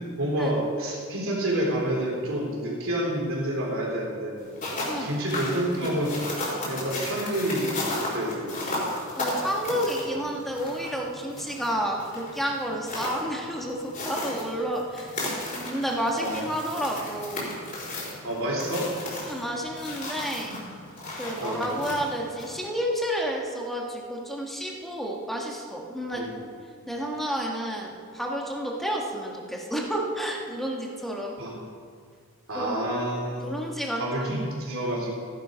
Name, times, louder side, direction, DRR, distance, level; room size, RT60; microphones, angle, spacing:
voice 1, 0.0-4.4 5.0-6.2 6.7-8.6 16.2-16.5 18.2-18.9 20.5-20.6 21.4-21.7 26.2-26.4 31.4-31.7 32.5-33.5 34.0-35.1, right 1 dB, 70° right, -2 dB, 3.7 m, -28 dB
sound 1, 4.4-22.7, left 1 dB, 40° left, 4.1 m, -35 dB
voice 2, 9.1-15.1 15.5-17.5 19.2-20.6 21.2-26.2 26.9-31.4 32.5-32.9 33.3-34.4, equal, ahead, -1 dB, 1.7 m, -30 dB
15.0 x 10.5 x 5.2 m, 2.1 s
head